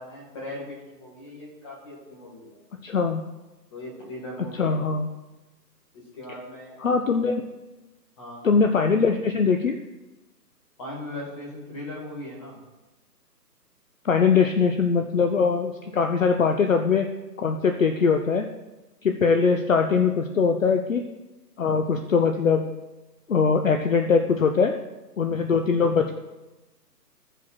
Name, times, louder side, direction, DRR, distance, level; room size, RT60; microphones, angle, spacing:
voice 1, 0.0-2.6 3.7-4.8 5.9-7.2 8.2-8.6 10.8-12.6, left 1 dB, 20° left, -3 dB, 1.9 m, -39 dB
voice 2, 2.8-3.2 4.6-5.1 6.8-7.4 8.4-9.8 14.0-17.1 17.4-18.5 19.0-21.1 21.6-22.7 23.3-24.7 25.2-26.1, left 5 dB, 50° left, 5 dB, 0.7 m, -21 dB
15.0 x 5.0 x 4.4 m, 1.1 s
hypercardioid pair, 165°, 50 cm